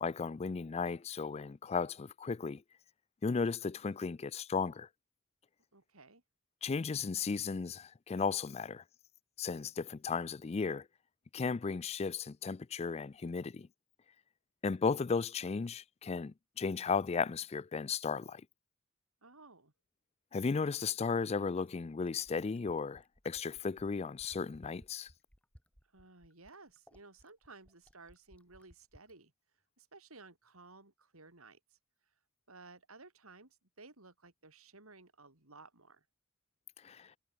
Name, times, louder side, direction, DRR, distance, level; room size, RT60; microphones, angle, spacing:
voice 1, 0.0-2.6 3.2-4.9 6.6-8.8 9.4-10.9 11.3-13.7 14.6-18.4 20.3-25.1 36.8-37.1, left 5 dB, 30° left, 0.4 m, -35 dB
voice 2, 5.7-6.2 19.2-19.7 25.9-29.3 29.8-31.8 32.5-36.0, right 3 dB, 85° right, 4.7 m, -56 dB
Fill (with liquid), 21.0-29.2 30.5-30.6, equal, 5° left, 6.2 m, -62 dB
head